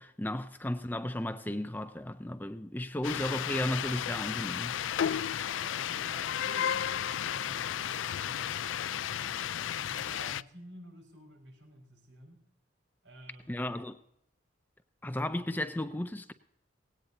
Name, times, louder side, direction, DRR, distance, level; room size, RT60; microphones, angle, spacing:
voice 1, 0.0-4.7 13.5-14.0 15.0-16.3, left 1 dB, 10° left, 0.5 m, -34 dB
sound 1, 3.0-10.4, left 9 dB, 85° left, 0.4 m, -33 dB
voice 2, 5.4-9.4 9.9-12.4 13.0-13.7, right 1 dB, 75° right, 5.3 m, -52 dB
18.5 x 17.5 x 2.8 m
head